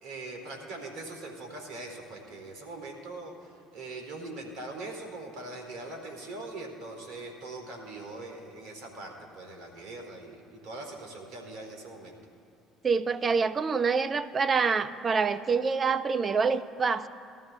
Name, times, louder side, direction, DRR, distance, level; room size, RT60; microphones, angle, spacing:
voice 1, 0.0-12.2, right 2 dB, 65° right, 2 dB, 2.5 m, -41 dB
voice 2, 12.8-17.1, right 5 dB, 35° right, 12 dB, 0.7 m, -26 dB
20.5 x 12.5 x 3.3 m, 2.4 s
hypercardioid pair, 65°, 0 cm